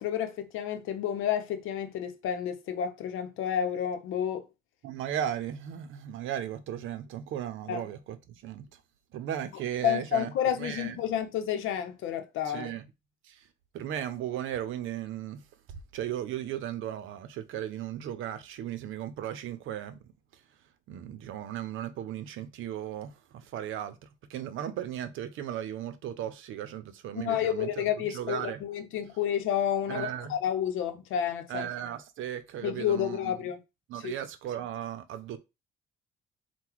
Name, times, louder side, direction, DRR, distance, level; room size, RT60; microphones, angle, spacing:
voice 1, 0.0-4.4 7.7-7.9 9.8-12.7 27.1-31.7 32.6-33.6 33.9-34.1, left 9 dB, 90° left, 0.7 m, -30 dB
voice 2, 4.8-8.2 8.4-8.6 9.1-10.3 10.6-11.0 12.4-12.8 13.3-13.4 13.7-15.4 15.9-20.0 20.9-24.0 24.3-27.8 28.1-28.6 29.9-30.3 31.5-33.3 33.9-35.4, right 10 dB, 85° right, 0.6 m, -36 dB
3.8 x 2.2 x 4.5 m
cardioid pair, 90°, 20 cm